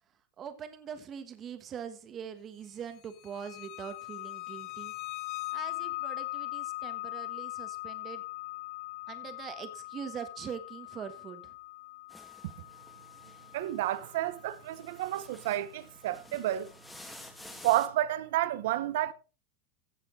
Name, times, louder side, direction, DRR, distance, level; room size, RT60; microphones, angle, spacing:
voice 1, 0.4-4.9 5.5-8.2 9.1-11.5, right 8 dB, 25° right, 1.3 m, -42 dB
sound 1, 3.2-15.7, left 20 dB, 40° left, 0.6 m, -41 dB
sound 2, 12.1-17.9, left 1 dB, 5° left, 1.7 m, -52 dB
voice 2, 13.5-16.7 17.6-19.1, right 14 dB, 70° right, 1.0 m, -30 dB
15.0 x 7.0 x 3.9 m
supercardioid pair, 160°, 0 cm